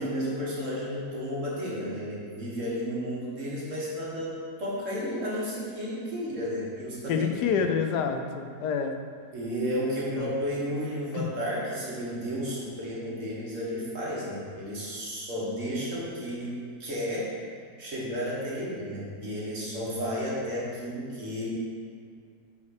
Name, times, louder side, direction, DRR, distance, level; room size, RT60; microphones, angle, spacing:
voice 1, 0.0-7.6 9.3-17.3 17.8-21.5, equal, 50° right, -6 dB, 1.9 m, -32 dB
voice 2, 7.1-9.0 10.2-10.3 11.1-11.3, left 6 dB, 80° left, 6 dB, 1.2 m, -27 dB
5.6 x 4.8 x 6.4 m, 2.2 s
omnidirectional pair, 1.8 m